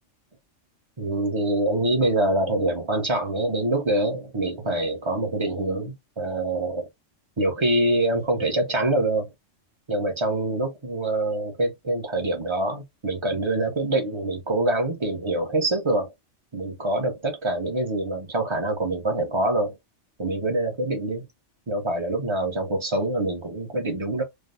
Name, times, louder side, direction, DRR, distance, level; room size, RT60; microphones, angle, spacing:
voice 1, 1.0-6.9 7.4-9.3 9.9-16.1 16.5-19.7 20.2-21.3 21.7-24.2, right 1 dB, 25° right, 0.8 m, -25 dB
3.4 x 2.2 x 2.5 m
omnidirectional pair, 1.3 m